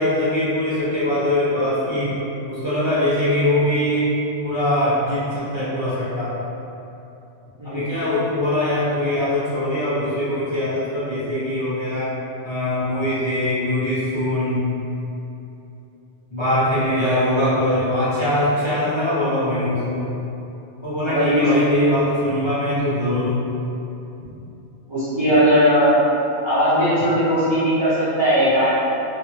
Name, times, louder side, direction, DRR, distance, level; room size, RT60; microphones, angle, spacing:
voice 1, 0.0-2.1 2.5-4.1 4.4-6.4 7.6-12.1 12.4-14.7 16.3-20.1 20.8-23.4, left 1 dB, 25° left, -13 dB, 0.7 m, -22 dB
voice 2, 21.1-21.5 24.9-26.0 26.4-28.7, equal, 35° right, -13 dB, 0.5 m, -18 dB
2.8 x 2.4 x 2.7 m, 2.9 s
omnidirectional pair, 1.2 m